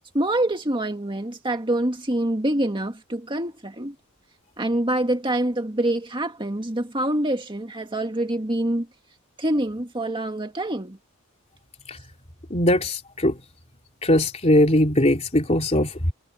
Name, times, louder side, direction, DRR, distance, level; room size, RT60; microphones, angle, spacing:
voice 1, 0.1-3.9 4.6-8.9 9.4-11.0, right 1 dB, 20° right, 1.9 m, -25 dB
voice 2, 12.5-13.4 14.0-16.1, left 1 dB, 30° left, 3.4 m, -20 dB
head